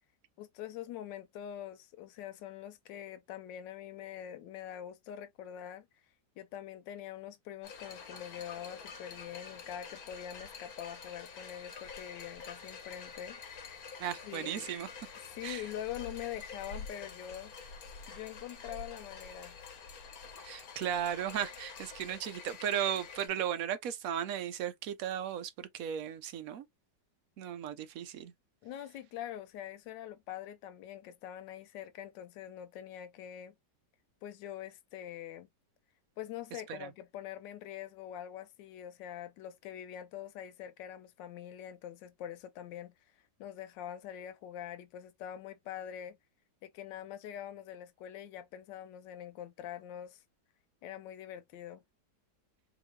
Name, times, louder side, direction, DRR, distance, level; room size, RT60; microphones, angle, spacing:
voice 1, 0.4-5.9 6.4-13.4 14.2-14.7 15.2-17.5 18.1-19.6 28.6-33.5 34.2-35.5 36.2-42.9 43.4-46.2 46.6-50.2 50.8-51.8, left 11 dB, 90° left, 1.3 m, -44 dB
sound 1, 7.6-23.3, left 5 dB, 60° left, 1.3 m, -47 dB
voice 2, 14.0-14.9 15.4-15.6 20.4-26.6 27.4-28.3 36.7-36.9, right 10 dB, 65° right, 0.9 m, -36 dB
3.7 x 3.0 x 3.1 m
omnidirectional pair, 1.9 m